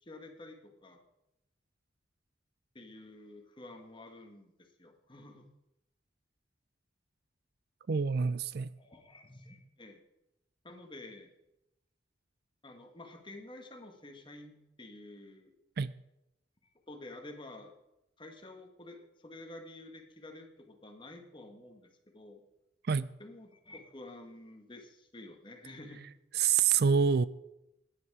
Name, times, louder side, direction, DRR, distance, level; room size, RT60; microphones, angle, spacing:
voice 1, 0.0-1.0 2.8-5.5 8.8-10.1 10.6-11.3 12.6-15.5 16.9-17.7 18.2-22.4 23.2-26.1, left 2 dB, 25° left, 1.7 m, -50 dB
voice 2, 7.9-8.7 15.8-15.9 22.8-23.1 26.3-27.3, right 6 dB, 55° right, 0.4 m, -27 dB
17.0 x 10.0 x 4.9 m
head